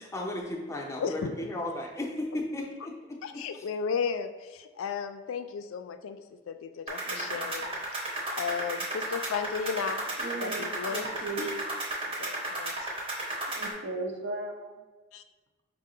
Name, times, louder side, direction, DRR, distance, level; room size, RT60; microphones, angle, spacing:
voice 1, 0.0-3.2 3.5-3.7 7.0-7.6, left 1 dB, 15° left, -1 dB, 0.5 m, -36 dB
voice 2, 1.0-1.3 3.2-8.1 8.4-10.1 10.4-11.0 12.2-12.9 15.1-15.2, left 6 dB, 85° left, 9 dB, 0.3 m, -34 dB
sound 1, 6.9-13.7, right 1 dB, 30° right, 0.8 m, -34 dB
voice 3, 10.2-11.5 13.5-14.8, right 2 dB, 60° right, 2 dB, 0.6 m, -36 dB
5.3 x 2.1 x 3.7 m, 1.2 s
head